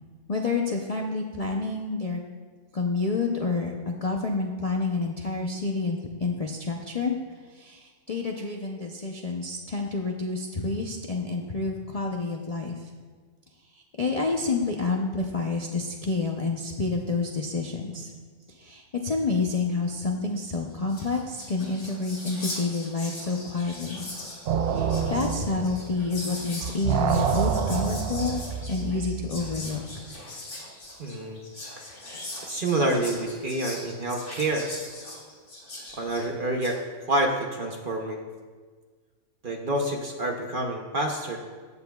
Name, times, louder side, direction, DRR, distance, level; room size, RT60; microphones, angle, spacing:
voice 1, 0.3-2.2 2.7-7.2 7.5-12.9 13.7-18.1 18.5-24.0 24.7-28.4 28.7-30.0, left 3 dB, 40° left, 0 dB, 0.5 m, -29 dB
Whispering, 20.5-20.6 20.8-36.8, left 1 dB, 75° left, 3.3 m, -40 dB
sound 1, 24.5-26.4 26.6-29.6, right 7 dB, 70° right, 0.6 m, -28 dB
voice 2, 31.0-31.4 32.4-34.7 35.9-36.8 37.1-38.2 39.4-41.4, right 1 dB, 45° right, 2 dB, 0.8 m, -27 dB
15.0 x 8.8 x 2.3 m, 1.5 s
omnidirectional pair, 1.6 m